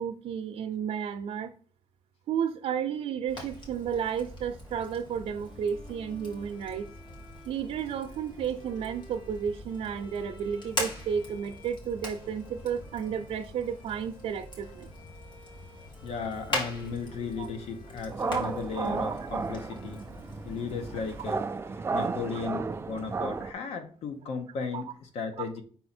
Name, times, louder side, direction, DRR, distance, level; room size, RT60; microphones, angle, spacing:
voice 1, 0.0-1.5 2.3-6.8 7.5-14.9 17.4-17.5 18.9-19.1 22.3-22.4 24.7-24.8 25.4-25.5, right 7 dB, 90° right, 3 dB, 0.6 m, -32 dB
Fire, 3.3-21.3, left 1 dB, 50° left, 2.8 m, -41 dB
sound 1, 5.4-22.2, left 1 dB, 75° left, 3.3 m, -55 dB
voice 2, 16.0-20.0 20.4-21.4 21.9-25.6, left 5 dB, 90° left, 7 dB, 1.2 m, -35 dB
sound 2, 18.1-23.5, right 4 dB, 25° right, 0.4 m, -33 dB
5.6 x 4.3 x 4.3 m, 0.43 s
wide cardioid pair, 145°, 10 cm